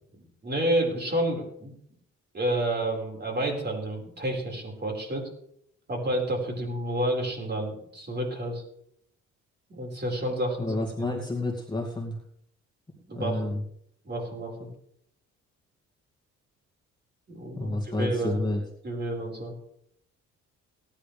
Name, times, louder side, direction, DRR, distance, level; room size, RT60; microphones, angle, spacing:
voice 1, 0.2-1.7 2.3-5.2 5.9-8.6 9.7-11.1 13.1-13.5 14.0-14.7 17.3-18.4 18.8-19.5, right 1 dB, 35° right, 0 dB, 5.1 m, -30 dB
voice 2, 10.6-12.2 13.1-13.6 17.6-18.6, left 2 dB, 15° left, -1 dB, 2.3 m, -30 dB
18.5 x 10.5 x 3.4 m, 0.71 s
cardioid pair, 90°, 30 cm